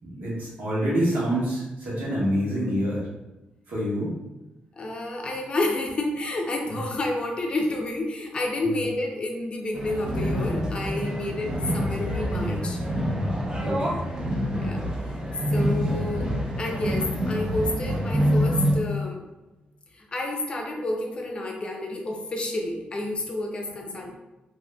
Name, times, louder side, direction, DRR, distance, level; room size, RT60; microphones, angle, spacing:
voice 1, 0.0-3.1 3.7-4.1 6.7-6.8 8.6-8.8 13.6-14.1 17.7-17.9, equal, 75° right, -7 dB, 1.3 m, -27 dB
voice 2, 4.8-12.8 14.6-15.2 15.5-19.2 19.9-24.1, left 2 dB, 35° left, 2 dB, 0.5 m, -30 dB
sound 1, 9.7-18.7, equal, 25° right, 0.5 m, -26 dB
3.9 x 2.7 x 2.2 m, 1.0 s
wide cardioid pair, 160°, 3 cm